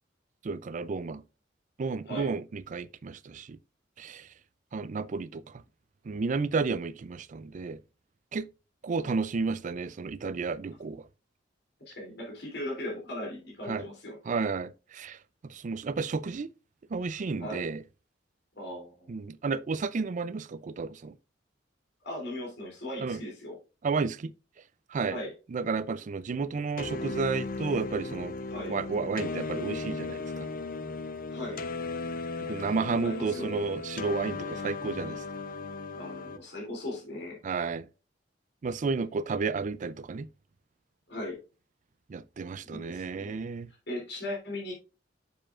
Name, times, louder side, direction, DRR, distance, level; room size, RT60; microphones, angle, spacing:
voice 1, 0.4-1.2 1.8-3.6 4.0-4.3 4.7-5.4 6.1-7.8 8.3-8.5 8.8-11.0 13.7-13.8 14.3-15.2 15.4-16.5 16.9-17.8 19.1-21.2 23.0-23.2 23.8-24.3 24.9-25.2 25.5-28.4 28.7-30.5 32.4-35.2 37.4-37.9 38.6-40.3 42.1-43.7, right 4 dB, 45° right, 0.4 m, -32 dB
voice 2, 11.9-14.5 17.4-17.7 18.6-19.1 22.0-23.6 25.1-25.3 28.5-28.7 31.3-31.6 32.6-32.7 33.0-33.6 35.9-37.4 41.1-41.4 42.7-43.4 43.9-44.7, left 1 dB, 65° left, 3.0 m, -38 dB
sound 1, 26.8-36.4, left 3 dB, 50° left, 0.7 m, -36 dB
7.4 x 6.7 x 2.5 m
head